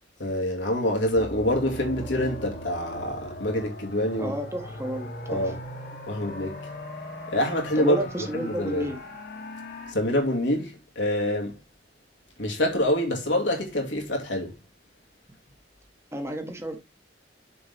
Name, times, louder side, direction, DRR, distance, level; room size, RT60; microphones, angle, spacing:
voice 1, 0.2-4.3 5.3-5.6 6.1-6.7 7.3-8.9 9.9-11.6 12.4-14.6, left 1 dB, 85° left, 2.2 m, -26 dB
sound 1, 1.1-9.9, left 1 dB, 60° left, 1.7 m, -39 dB
voice 2, 4.2-5.5 7.8-9.0 16.1-16.8, right 1 dB, 15° right, 1.4 m, -31 dB
6.9 x 5.4 x 3.5 m
head